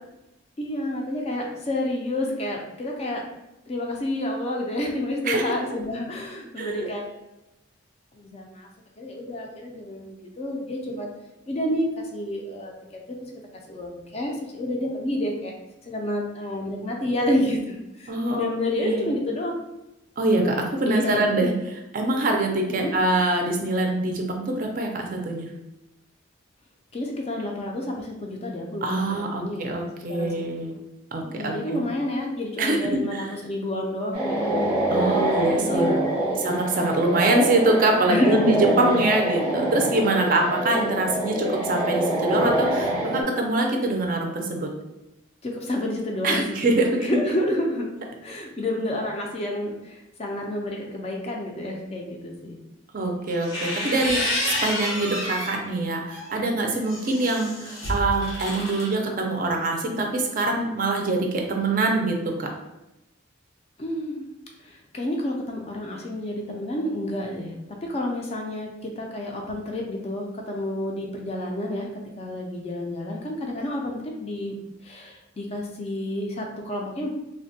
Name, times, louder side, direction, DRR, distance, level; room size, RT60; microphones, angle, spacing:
voice 1, 0.6-3.2 3.7-7.1 8.1-8.7 9.0-11.1 11.5-12.7 13.5-15.5 15.9-19.5 20.8-21.2 22.7-22.9 26.9-29.7 30.1-30.5 31.2-34.6 35.7-36.4 38.1-38.7 45.4-46.4 47.0-47.9 48.2-52.6 63.8-64.3 64.6-67.5 67.8-71.9 72.2-74.5 74.8-77.1, left 1 dB, 30° left, 1 dB, 0.3 m, -29 dB
voice 2, 6.6-6.9 18.1-19.1 20.2-25.5 28.8-30.8 31.1-31.9 32.6-33.3 34.9-36.0 36.4-44.7 46.2-46.9 52.9-62.5, right 2 dB, 40° right, 2 dB, 0.4 m, -24 dB
sound 1, 34.1-43.2, right 1 dB, 5° right, 0.6 m, -25 dB
sound 2, 53.3-55.6 56.1-58.9, left 1 dB, 80° left, 0.8 m, -29 dB
3.2 x 2.1 x 2.6 m, 0.94 s
head